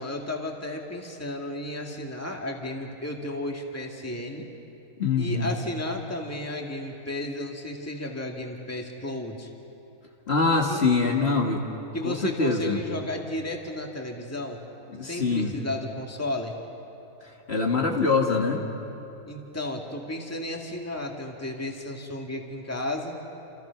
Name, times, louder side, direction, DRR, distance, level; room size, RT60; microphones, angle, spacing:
voice 1, 0.0-4.5 5.2-9.5 10.7-10.8 11.9-14.6 15.0-16.6 19.3-23.2, left 1 dB, 10° left, 1 dB, 2.1 m, -33 dB
voice 2, 5.0-5.6 10.3-11.6 12.0-12.8 14.9-15.5 17.5-18.6, left 4 dB, 50° left, 0 dB, 2.1 m, -24 dB
28.5 x 28.5 x 5.9 m, 2.9 s
omnidirectional pair, 1.4 m